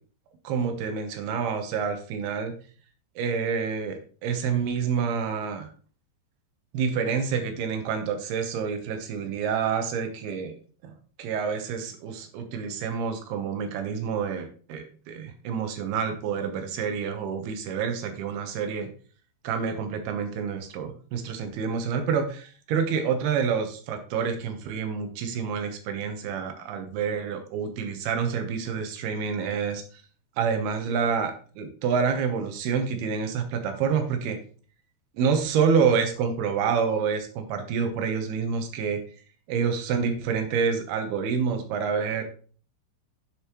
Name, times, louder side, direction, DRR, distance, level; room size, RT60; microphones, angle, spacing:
voice 1, 0.4-2.5 3.2-5.7 6.7-10.5 10.8-10.9 11.2-18.9 19.4-29.8 30.4-34.4 35.1-39.0 39.5-42.2, right 6 dB, 70° right, 6 dB, 2.7 m, -28 dB
7.6 x 6.9 x 3.0 m, 0.41 s
omnidirectional pair, 5.2 m